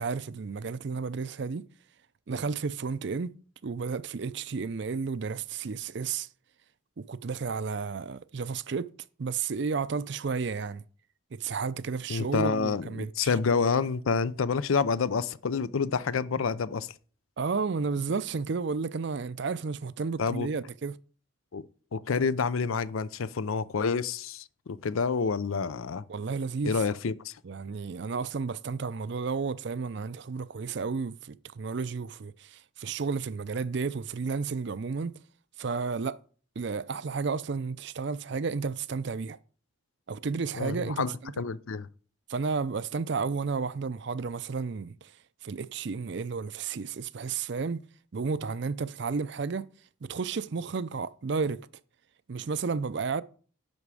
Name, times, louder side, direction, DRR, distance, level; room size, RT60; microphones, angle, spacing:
voice 1, 0.0-1.7 2.3-3.4 3.6-6.3 7.0-8.9 9.2-10.8 11.3-13.3 17.4-21.0 26.1-26.8 27.4-35.1 35.6-36.2 36.6-39.4 40.1-41.3 42.3-45.1 45.4-47.9 48.1-49.7 50.0-51.7 52.3-53.2, right 5 dB, 55° right, 0.5 m, -32 dB
voice 2, 12.1-16.9 20.2-20.5 21.5-26.0 26.6-27.4 40.6-41.9, left 5 dB, 80° left, 0.5 m, -28 dB
10.5 x 6.9 x 4.9 m
head